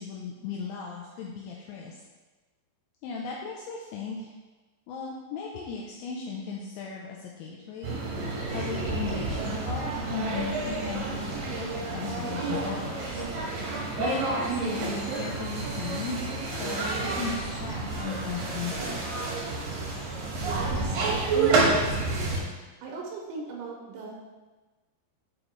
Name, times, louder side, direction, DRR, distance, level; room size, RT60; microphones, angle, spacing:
voice 1, 0.0-2.0 3.0-4.3 4.9-13.2 13.6-19.0, left 5 dB, 80° left, -2 dB, 2.8 m, -37 dB
sound 1, 7.8-22.4, right 3 dB, 65° right, 2.3 m, -29 dB
voice 2, 20.4-22.4 22.8-24.2, right 6 dB, 85° right, -1 dB, 3.1 m, -37 dB
7.9 x 5.0 x 3.1 m, 1.3 s
omnidirectional pair, 5.4 m